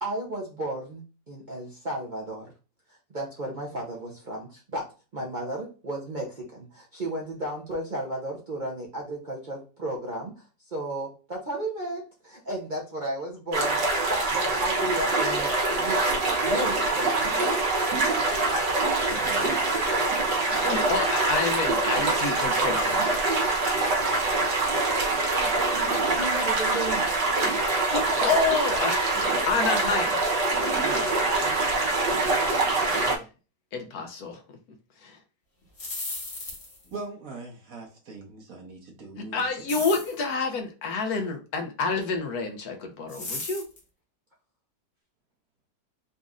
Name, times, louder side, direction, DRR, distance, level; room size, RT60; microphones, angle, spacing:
voice 1, 0.0-2.5 2.9-4.9 5.1-17.7 25.8-27.2, right 1 dB, 40° right, 0.7 m, -34 dB
sound 1, 13.5-33.2, right 3 dB, 80° right, 1.7 m, -24 dB
voice 2, 19.1-19.6 30.8-31.6 36.9-39.5 39.7-39.8, right 3 dB, 60° right, 1.3 m, -41 dB
voice 3, 20.5-23.1 27.9-29.1 29.5-30.2 32.8-33.2 33.7-34.6 35.0-35.2 39.3-43.6, left 4 dB, 65° left, 1.1 m, -28 dB
sound 2, 35.6-36.9 39.7-40.2 43.1-43.8, left 2 dB, 40° left, 1.3 m, -35 dB
4.1 x 2.5 x 3.5 m
omnidirectional pair, 1.8 m